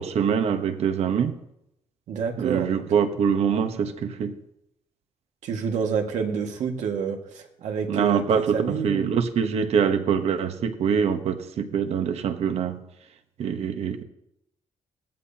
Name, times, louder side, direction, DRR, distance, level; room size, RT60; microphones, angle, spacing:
voice 1, 0.0-1.4 2.4-4.4 7.9-8.5 8.8-12.8 13.4-14.0, right 7 dB, 60° right, 1.1 m, -24 dB
voice 2, 2.1-2.8 5.4-9.1, right 6 dB, 80° right, 1.9 m, -28 dB
18.5 x 14.0 x 2.9 m
cardioid pair, 155°, 12 cm